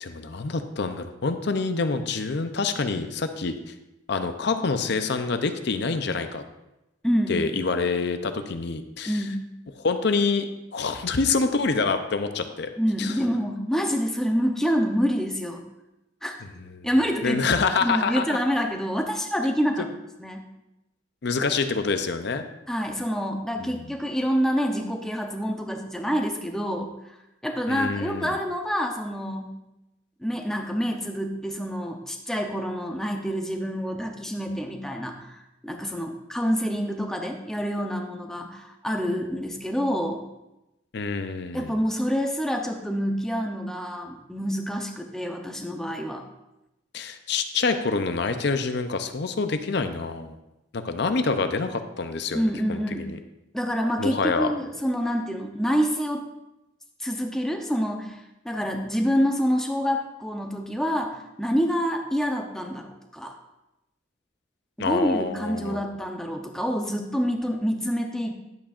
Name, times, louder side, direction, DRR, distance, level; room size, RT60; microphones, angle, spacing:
voice 1, 0.0-3.7 4.1-6.4 7.3-9.2 9.8-12.7 13.0-13.2 16.4-16.9 17.2-18.4 21.2-22.4 23.6-23.9 27.7-28.4 40.9-41.8 46.9-50.4 50.7-53.2 54.0-54.5 64.8-65.8, left 4 dB, 55° left, 8 dB, 0.6 m, -26 dB
voice 2, 7.0-7.4 9.1-9.4 12.8-15.6 16.2-16.3 16.8-17.5 17.8-19.9 20.2-20.5 22.7-26.9 27.4-29.6 30.2-40.2 41.5-46.3 52.3-53.1 53.5-56.2 57.0-63.3 64.8-68.3, equal, 5° left, 3 dB, 0.7 m, -27 dB
10.5 x 8.6 x 2.5 m, 0.93 s
head